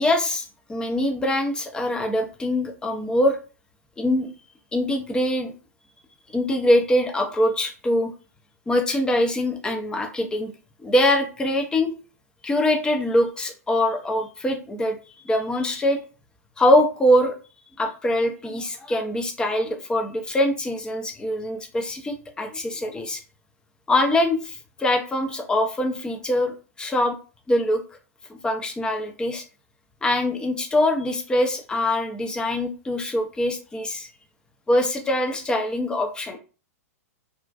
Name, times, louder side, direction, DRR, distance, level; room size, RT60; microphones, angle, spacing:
voice 1, 0.0-3.4 4.0-4.3 4.7-5.5 6.3-8.1 8.7-10.5 10.8-11.9 12.4-15.0 15.3-16.0 16.6-17.3 17.8-23.2 23.9-27.2 27.5-27.8 28.3-29.4 30.0-34.1 34.7-36.4, left 1 dB, 10° left, 4 dB, 0.4 m, -23 dB
2.4 x 2.1 x 2.4 m, 0.36 s
figure-of-eight pair, 100°, 8 cm